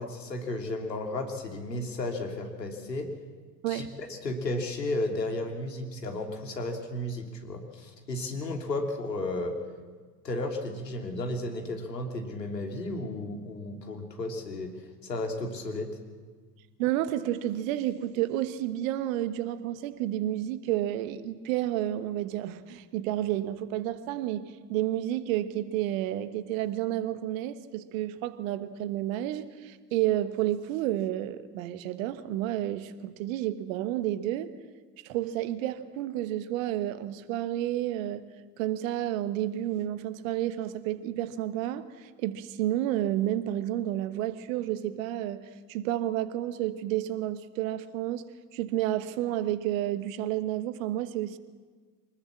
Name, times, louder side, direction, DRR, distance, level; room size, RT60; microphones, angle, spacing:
voice 1, 0.0-3.1 3.7-9.6 10.2-15.9, left 2 dB, 75° left, 3.2 m, -33 dB
voice 2, 3.6-4.0 16.8-34.5 35.0-38.2 38.6-51.4, right 13 dB, 55° right, 1.4 m, -30 dB
24.5 x 20.0 x 7.4 m
figure-of-eight pair, 75°, 49 cm